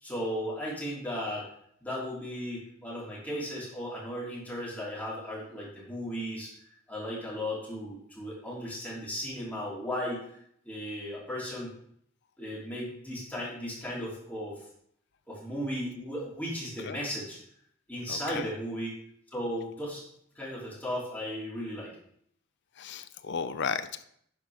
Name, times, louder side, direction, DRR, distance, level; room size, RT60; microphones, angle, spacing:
voice 1, 0.0-1.5 1.8-6.5 6.9-10.2 10.6-11.7 12.4-14.6 15.3-17.4 17.9-18.9 19.3-20.0 20.3-21.9, equal, 10° left, -7 dB, 3.1 m, -36 dB
voice 2, 18.1-18.5 22.8-24.0, left 6 dB, 55° left, 11 dB, 0.5 m, -34 dB
11.0 x 5.1 x 3.5 m, 0.68 s
head